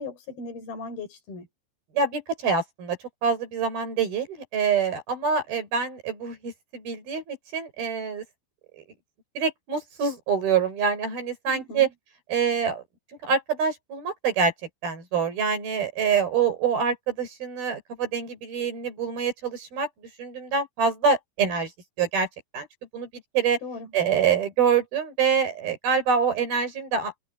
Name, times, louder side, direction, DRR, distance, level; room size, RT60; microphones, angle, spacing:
voice 1, 0.0-1.5 11.5-11.9 23.6-23.9, left 3 dB, 85° left, 6.0 m, -37 dB
voice 2, 1.9-3.0 3.2-8.2 8.8-8.9 9.4-11.9 12.3-12.8 13.2-14.5 14.8-19.9 20.2-21.7 22.0-22.3 22.5-22.7 22.9-23.1 23.3-23.6 23.9-27.1, right 6 dB, 85° right, 7.5 m, -25 dB
omnidirectional pair, 4.2 m